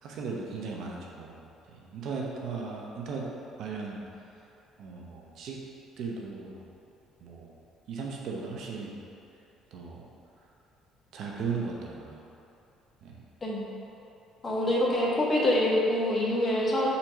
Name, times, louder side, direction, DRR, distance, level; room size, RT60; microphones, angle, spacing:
voice 1, 0.0-3.3 3.6-4.0 4.8-5.6 6.0-6.6 7.2-7.6 7.9-9.0 9.7-10.1 11.1-12.2 13.0-13.1, right 4 dB, 65° right, -2 dB, 0.9 m, -37 dB
voice 2, 13.4-13.7 14.4-16.9, left 1 dB, 30° left, -4 dB, 1.3 m, -25 dB
4.5 x 4.3 x 5.3 m, 2.8 s
supercardioid pair, 85°, 0 cm